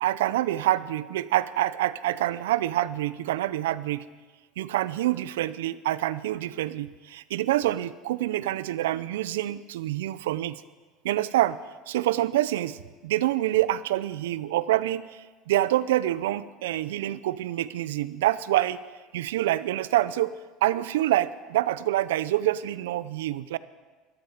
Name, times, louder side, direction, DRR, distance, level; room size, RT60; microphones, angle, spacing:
voice 1, 0.0-4.1 4.6-10.6 11.0-11.6 11.9-18.8 19.1-20.3 20.6-23.6, right 14 dB, 90° right, 16 dB, 0.5 m, -26 dB
13.5 x 12.5 x 4.9 m, 1.3 s
supercardioid pair, 105°, 0 cm